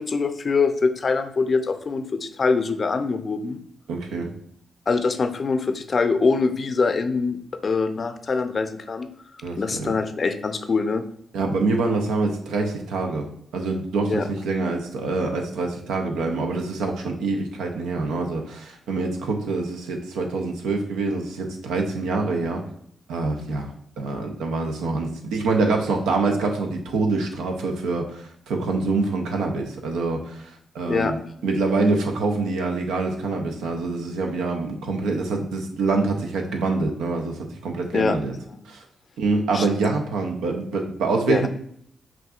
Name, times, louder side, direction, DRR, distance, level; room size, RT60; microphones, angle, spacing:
voice 1, 0.0-3.6 4.9-7.4 7.6-9.1 9.6-11.0 14.1-14.3 30.9-31.1 37.9-38.2 38.5-38.6 39.5-39.7 41.3-41.5, left 4 dB, 50° left, 8 dB, 0.4 m, -23 dB
voice 2, 3.9-4.3 9.4-9.9 11.3-22.6 23.1-23.7 24.0-38.3 38.7-38.8 39.2-41.5, right 3 dB, 90° right, 2 dB, 0.6 m, -25 dB
5.6 x 2.6 x 2.4 m, 0.67 s
supercardioid pair, 60°, 0 cm